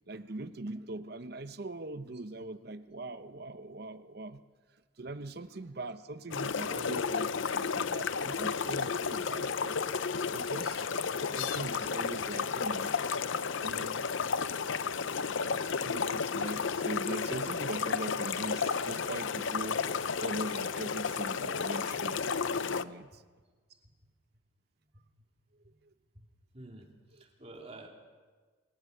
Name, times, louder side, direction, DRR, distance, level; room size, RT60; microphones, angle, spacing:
voice 1, 0.1-4.4 5.0-9.8 10.3-10.9 11.2-13.0 13.6-14.3 15.8-19.8 20.2-22.2 22.7-23.2, right 2 dB, 50° right, 11 dB, 0.8 m, -41 dB
sound 1, 6.3-22.8, left 5 dB, 70° left, 0.6 m, -32 dB
voice 2, 26.1-27.9, right 2 dB, 30° right, 1 dB, 2.9 m, -50 dB
22.5 x 19.5 x 6.7 m, 1.4 s
head